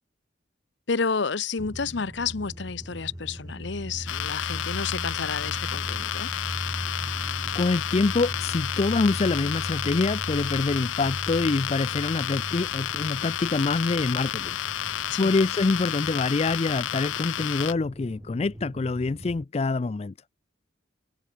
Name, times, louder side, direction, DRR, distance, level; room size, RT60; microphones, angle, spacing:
voice 1, 0.9-6.3 15.1-15.3, left 5 dB, 70° left, 0.8 m, -30 dB
sound 1, 1.6-19.4, equal, 20° right, 3.3 m, -38 dB
sound 2, 4.1-17.7, left 11 dB, 90° left, 0.5 m, -31 dB
voice 2, 7.5-20.1, left 3 dB, 35° left, 0.4 m, -26 dB
head